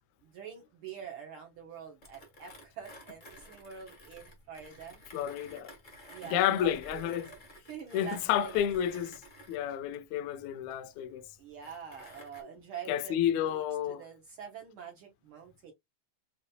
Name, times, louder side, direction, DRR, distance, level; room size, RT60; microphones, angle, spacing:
voice 1, 0.2-5.0 6.1-7.4 7.7-8.7 11.4-13.6 14.0-15.7, right 7 dB, 85° right, 1.2 m, -45 dB
Mechanisms, 2.0-12.4, equal, 55° left, 0.5 m, -53 dB
voice 2, 5.1-5.7 6.2-7.3 7.9-9.2 9.5-11.3 12.9-14.0, left 10 dB, 80° left, 1.8 m, -30 dB
7.0 x 2.7 x 2.2 m
omnidirectional pair, 3.6 m